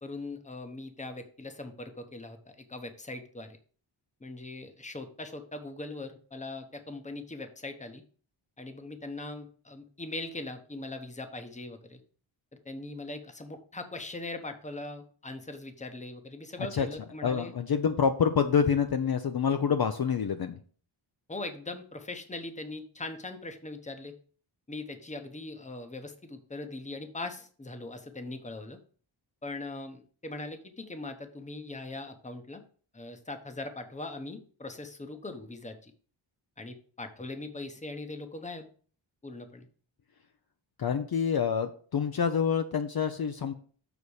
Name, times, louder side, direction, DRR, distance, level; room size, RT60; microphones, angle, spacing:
voice 1, 0.0-3.6 4.2-8.0 8.6-12.0 12.5-17.5 21.3-24.2 24.7-28.8 29.4-32.6 32.9-35.9 36.6-38.7 39.2-39.7, left 2 dB, 15° left, 7 dB, 0.9 m, -40 dB
voice 2, 17.2-20.6 40.8-43.5, left 6 dB, 50° left, 7 dB, 0.7 m, -27 dB
7.1 x 4.1 x 6.4 m, 0.44 s
wide cardioid pair, 135°, 47 cm